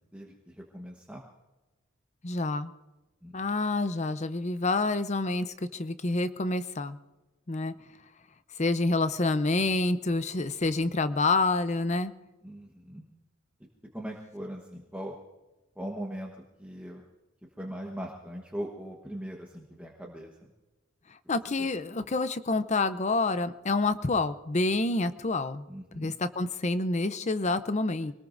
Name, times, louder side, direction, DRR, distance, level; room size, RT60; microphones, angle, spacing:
voice 1, 0.1-1.2 3.2-3.4 12.4-13.0 13.9-15.1 15.8-16.3 16.6-17.0 17.6-20.5 21.2-22.1 25.7-26.1, equal, 5° right, -1 dB, 1.2 m, -40 dB
voice 2, 2.2-2.7 3.3-7.0 7.5-7.7 8.6-12.1 21.3-25.6 25.9-28.1, left 3 dB, 35° left, 12 dB, 0.7 m, -28 dB
25.5 x 19.0 x 2.6 m, 1.1 s
head